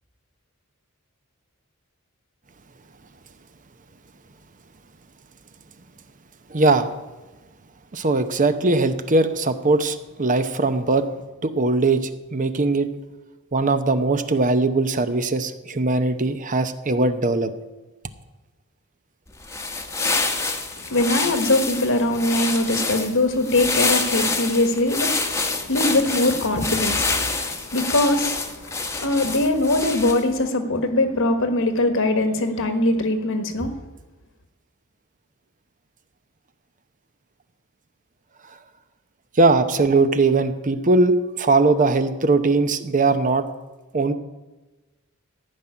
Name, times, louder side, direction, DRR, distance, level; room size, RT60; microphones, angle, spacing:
voice 1, 6.5-6.9 7.9-11.1 11.4-12.9 13.5-17.5 39.3-43.5 43.9-44.1, right 3 dB, 35° right, 0.8 m, -20 dB
sound 1, 19.3-30.4, left 3 dB, 15° left, 1.1 m, -27 dB
voice 2, 20.8-33.7, left 2 dB, 65° left, 1.5 m, -22 dB
14.5 x 6.0 x 9.9 m
head